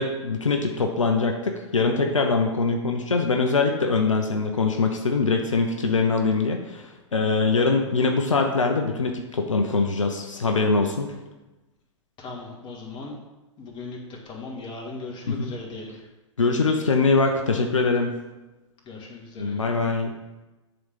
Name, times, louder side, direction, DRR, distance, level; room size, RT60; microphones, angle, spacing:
voice 1, 0.0-11.1 15.3-15.5 16.4-18.2 19.4-20.1, left 4 dB, 90° left, 4 dB, 0.8 m, -23 dB
voice 2, 12.2-13.2 13.6-16.0 18.8-19.6, left 3 dB, 30° left, -1 dB, 2.3 m, -38 dB
7.7 x 4.0 x 6.7 m, 1.1 s
hypercardioid pair, 105°, 16 cm